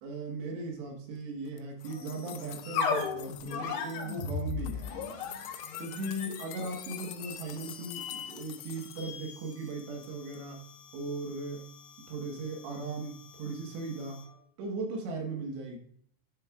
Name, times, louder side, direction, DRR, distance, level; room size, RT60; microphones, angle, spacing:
voice 1, 0.0-4.9 5.8-10.6 10.9-11.7 12.0-14.2 14.6-15.8, right 3 dB, 70° right, 1 dB, 3.2 m, -38 dB
sound 1, 1.5-3.6 3.9-9.1 9.5-10.1 10.3-10.4, left 14 dB, 90° left, 3.3 m, -47 dB
sound 2, 1.9-14.4, left 5 dB, 75° left, 2.6 m, -39 dB
11.0 x 6.5 x 2.4 m, 0.63 s
omnidirectional pair, 5.9 m